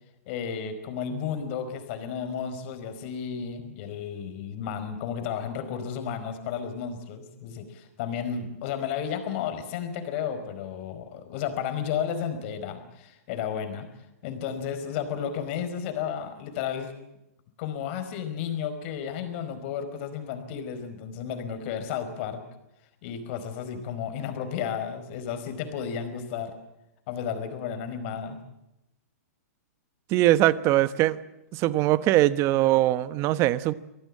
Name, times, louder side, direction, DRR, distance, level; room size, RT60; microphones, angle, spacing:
voice 1, 0.3-13.9 14.2-16.9 17.6-22.4 23.0-26.5 27.1-28.4, left 8 dB, 45° left, 8 dB, 4.7 m, -33 dB
voice 2, 30.1-31.2 31.5-33.7, right 15 dB, 35° right, 15 dB, 1.1 m, -21 dB
25.5 x 18.0 x 8.6 m, 0.89 s
hypercardioid pair, 140°, 9 cm